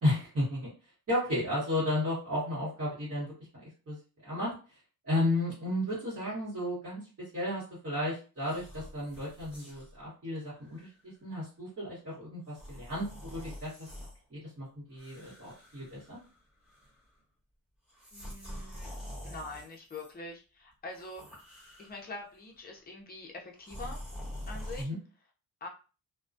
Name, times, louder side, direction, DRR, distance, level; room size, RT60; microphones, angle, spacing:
voice 1, 0.0-0.7 1.1-4.8 5.0-16.2 24.8-25.0, left 1 dB, 35° right, -9 dB, 1.2 m, -34 dB
sound 1, 8.4-10.0 10.6-10.8 12.5-14.2 14.9-16.4 16.7-17.1 17.9-20.1 20.9-22.2 23.6-24.8, equal, ahead, 1.0 m, -45 dB
voice 2, 18.1-18.9 19.2-21.2 21.8-24.0 24.5-24.9 25.6-25.7, left 2 dB, 25° left, 0 dB, 0.5 m, -44 dB
2.2 x 2.2 x 2.5 m, 0.34 s
wide cardioid pair, 160°, 39 cm